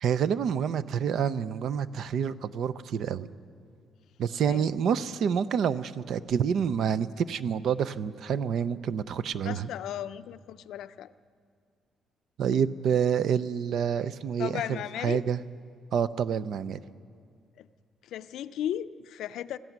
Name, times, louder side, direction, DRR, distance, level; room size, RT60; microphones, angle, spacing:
voice 1, 0.0-3.3 4.2-9.7 12.4-15.4 15.9-16.8, right 7 dB, 50° right, 15 dB, 0.5 m, -28 dB
voice 2, 9.4-11.1 14.4-15.2 17.6-17.7 18.0-19.6, left 11 dB, 65° left, 13 dB, 0.5 m, -35 dB
19.5 x 14.5 x 9.3 m, 2.2 s
cardioid pair, 180°, 0 cm